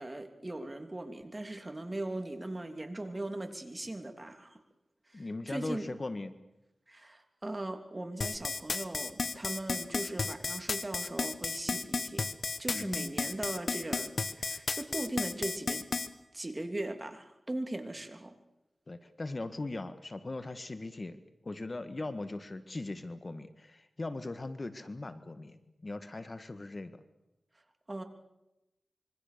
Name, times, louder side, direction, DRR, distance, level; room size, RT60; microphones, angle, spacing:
voice 1, 0.0-4.6 5.1-5.9 6.9-12.2 12.6-15.8 16.3-18.3 27.9-28.0, right 1 dB, 25° right, 6 dB, 3.2 m, -39 dB
voice 2, 5.1-6.4 12.7-13.1 18.9-27.0, left 2 dB, 40° left, 10 dB, 1.8 m, -40 dB
sound 1, 8.2-16.1, left 4 dB, 65° left, 1.4 m, -33 dB
26.0 x 24.0 x 6.9 m, 0.91 s
wide cardioid pair, 70°, 0 cm